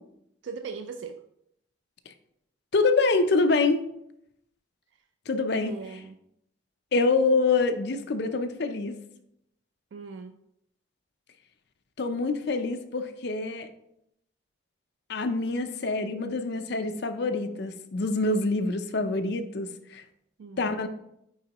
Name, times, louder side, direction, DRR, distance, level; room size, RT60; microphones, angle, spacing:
voice 1, 0.4-1.2 5.7-6.2 9.9-10.4 20.4-20.8, right 5 dB, 75° right, 7 dB, 0.4 m, -39 dB
voice 2, 2.7-3.8 5.3-5.7 6.9-9.0 12.0-13.7 15.1-20.0 20.6-20.9, left 3 dB, 55° left, 8 dB, 0.5 m, -26 dB
9.4 x 3.7 x 2.9 m, 0.78 s
head